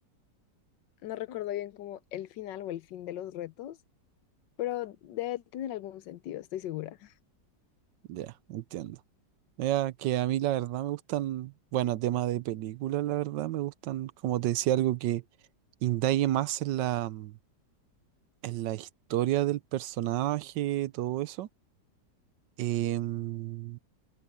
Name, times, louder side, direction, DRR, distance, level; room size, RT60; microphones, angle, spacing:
voice 1, 1.0-3.8 4.6-7.1, left 13 dB, 80° left, 1.4 m, -37 dB
voice 2, 8.1-9.0 9.6-15.2 15.8-17.4 18.4-21.5 22.6-23.8, right 14 dB, 80° right, 1.3 m, -30 dB
omnidirectional pair, 1.9 m